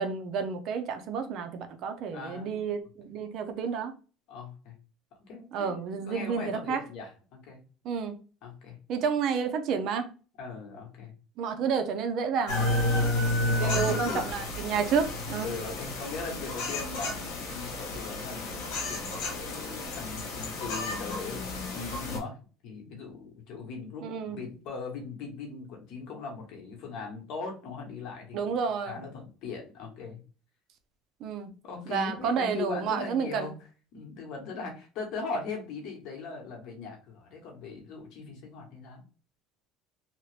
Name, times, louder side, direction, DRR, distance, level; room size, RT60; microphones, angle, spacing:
voice 1, 0.0-3.9 5.5-6.8 7.8-8.2 8.9-10.1 11.4-12.7 13.6-15.5 24.0-24.4 28.3-29.0 31.2-31.5 31.9-33.5, right 6 dB, 55° right, 0.5 m, -30 dB
voice 2, 2.1-2.6 4.3-4.7 5.2-7.6 8.4-8.8 10.4-11.1 13.0-13.3 13.6-14.2 15.4-22.4 22.6-28.4 28.9-30.2 31.6-33.5 33.9-39.0, left 4 dB, 60° left, 1.2 m, -39 dB
sound 1, 12.5-22.2, left 2 dB, 85° left, 1.1 m, -31 dB
2.9 x 2.4 x 3.2 m
cardioid pair, 135°, 0 cm